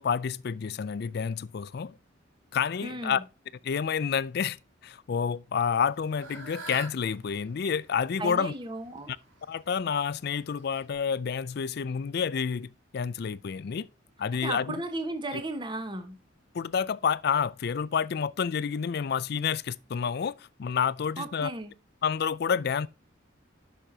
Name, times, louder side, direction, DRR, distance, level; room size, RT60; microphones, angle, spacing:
voice 1, 0.0-1.9 2.5-3.2 3.6-4.6 4.8-8.5 9.1-9.2 9.5-13.9 14.2-14.8 15.3-15.4 16.5-21.5 22.0-22.9, left 6 dB, 55° left, 0.4 m, -29 dB
voice 2, 2.8-3.2 8.2-9.1 14.4-16.2 21.2-21.7, right 2 dB, 25° right, 1.2 m, -35 dB
Fowl / Bird, 5.6-10.9, right 4 dB, 90° right, 3.3 m, -47 dB
10.0 x 6.4 x 2.8 m
head